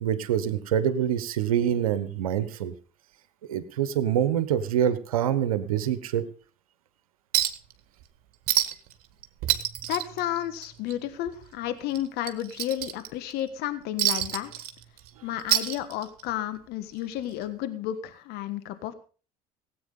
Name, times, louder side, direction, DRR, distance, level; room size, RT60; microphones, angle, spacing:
voice 1, 0.0-2.7 3.5-6.2, right 9 dB, 85° right, 13 dB, 1.2 m, -25 dB
Chink clink, 7.3-7.7 8.0-8.1 8.5-8.9 9.2-10.9 11.3-11.4 11.9-13.3 14.0-15.1 15.4-16.3 17.4-17.5, right 13 dB, 60° right, 1.7 m, -27 dB
voice 2, 9.9-14.5 15.2-18.9, left 12 dB, 65° left, 11 dB, 1.5 m, -32 dB
17.0 x 8.6 x 5.5 m, 0.38 s
hypercardioid pair, 60°, 18 cm